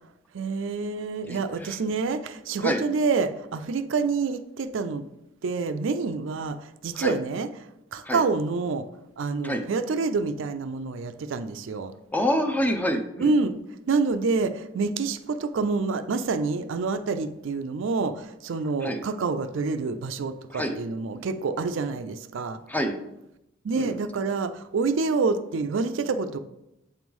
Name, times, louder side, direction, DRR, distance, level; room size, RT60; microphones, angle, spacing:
voice 1, 0.3-5.0 5.4-7.5 7.9-8.9 9.2-11.9 13.2-13.6 13.9-22.6 23.6-26.4, right 4 dB, 70° right, 10 dB, 0.4 m, -27 dB
voice 2, 1.3-1.8 2.6-2.8 6.9-7.1 8.0-8.2 9.4-9.6 12.1-13.3 18.8-19.0 20.5-20.8 22.7-23.0 23.7-24.0, equal, 10° left, 6 dB, 0.5 m, -27 dB
7.8 x 3.1 x 5.3 m, 0.86 s
head